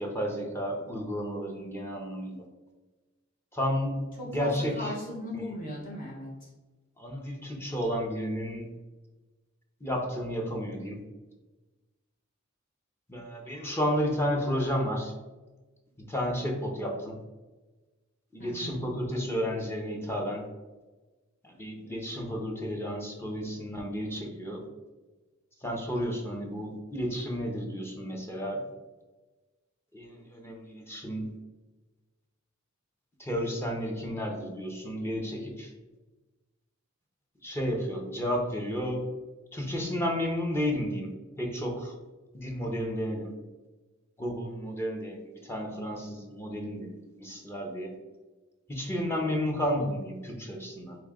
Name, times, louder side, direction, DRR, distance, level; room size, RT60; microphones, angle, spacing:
voice 1, 0.0-2.4 3.5-4.0 4.3-4.9 7.0-8.7 9.8-11.0 13.1-15.1 16.0-17.2 18.3-20.4 21.4-24.6 25.6-28.6 29.9-31.3 33.2-35.7 37.4-39.0 39.5-41.1 41.4-41.9 42.3-43.3 44.2-47.9 48.7-51.0, equal, 10° left, 0 dB, 0.7 m, -32 dB
voice 2, 4.2-6.5 18.4-18.8, left 1 dB, 45° left, -5 dB, 1.4 m, -38 dB
4.0 x 3.1 x 3.6 m, 1.2 s
head